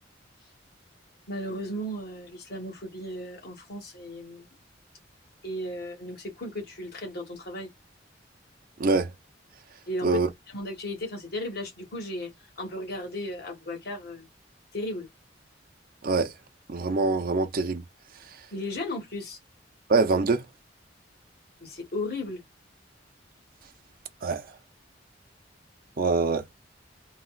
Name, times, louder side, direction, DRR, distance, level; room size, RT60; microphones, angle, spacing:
voice 1, 1.3-4.5 5.4-7.7 9.9-10.2 10.5-12.3 12.6-14.3 14.7-15.1 18.5-19.4 21.6-22.4, left 1 dB, 55° left, 1.5 m, -35 dB
voice 2, 8.8-9.1 10.0-10.3 16.0-16.3 16.7-17.8 19.9-20.5 24.2-24.4 26.0-26.6, right 3 dB, 50° right, 0.6 m, -24 dB
3.9 x 2.3 x 2.3 m
head